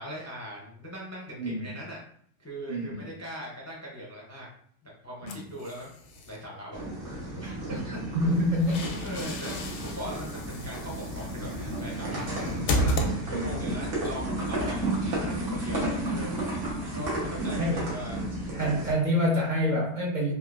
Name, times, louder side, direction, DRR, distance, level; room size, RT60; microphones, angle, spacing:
voice 1, 0.0-2.0 2.4-4.5 4.8-5.9 6.3-6.8 7.2-7.6 7.9-8.0 8.7-11.5 11.8-12.3 12.7-14.9 15.3-16.4 16.9-18.2, equal, 20° left, -4 dB, 0.4 m, -40 dB
voice 2, 2.7-3.1 5.2-5.5 7.9-8.0 8.2-8.8 13.3-13.6 17.6-17.9 18.5-20.3, equal, 50° right, -3 dB, 0.6 m, -27 dB
sound 1, 5.3-6.4 8.3-13.7, equal, 65° left, 0.6 m, -33 dB
sound 2, 6.7-18.9, right 1 dB, 75° right, 1.3 m, -32 dB
3.6 x 2.6 x 2.3 m, 0.62 s
omnidirectional pair, 1.3 m